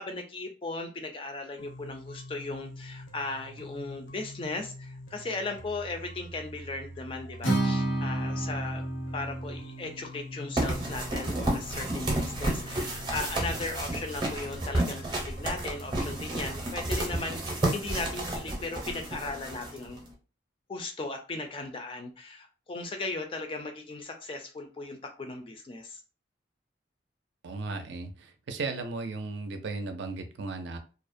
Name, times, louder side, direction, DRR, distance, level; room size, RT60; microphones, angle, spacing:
voice 1, 0.0-8.8 9.1-20.0 20.7-26.0, left 3 dB, 30° left, 5 dB, 0.3 m, -37 dB
sound 1, 1.6-17.6, equal, 70° left, 0.6 m, -45 dB
Acoustic guitar, 7.4-11.6, right 2 dB, 90° left, 1.1 m, -32 dB
sound 2, 10.6-20.1, right 1 dB, 25° right, 0.6 m, -31 dB
voice 2, 27.4-30.8, right 3 dB, 70° right, 6 dB, 0.4 m, -36 dB
2.4 x 2.0 x 2.5 m, 0.35 s
head